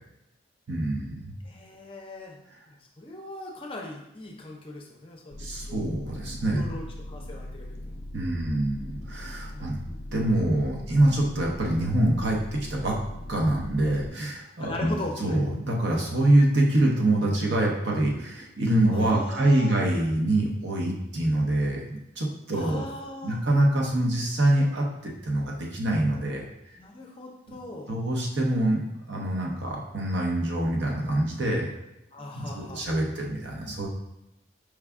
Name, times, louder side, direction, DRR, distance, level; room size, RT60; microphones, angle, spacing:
voice 1, 0.7-1.3 5.4-6.7 8.1-9.8 10.1-13.0 13.3-14.9 15.2-22.8 23.2-26.4 27.9-28.8 29.1-31.7 32.3-33.9, right 1 dB, 65° right, -1 dB, 0.8 m, -25 dB
voice 2, 1.4-2.4 2.7-5.9 6.5-7.9 9.5-10.1 14.6-15.4 18.9-19.8 22.5-23.4 26.8-28.0 32.1-32.9, left 2 dB, 30° left, 0 dB, 0.5 m, -39 dB
sound 1, 5.3-14.1, left 1 dB, 80° left, 0.4 m, -40 dB
4.7 x 2.3 x 3.5 m, 0.91 s
head